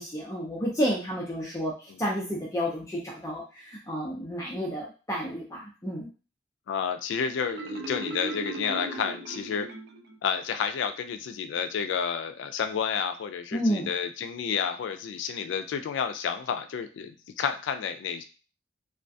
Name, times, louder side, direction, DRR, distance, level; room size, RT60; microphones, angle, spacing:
voice 1, 0.0-1.7 2.0-6.1 13.5-13.9, equal, 15° left, -4 dB, 0.4 m, -30 dB
voice 2, 6.7-9.7 10.2-18.2, left 7 dB, 85° left, 8 dB, 0.3 m, -30 dB
Marimba xylophone, 7.4-10.2, right 2 dB, 60° right, 0.4 m, -37 dB
2.3 x 2.2 x 2.6 m, 0.34 s
head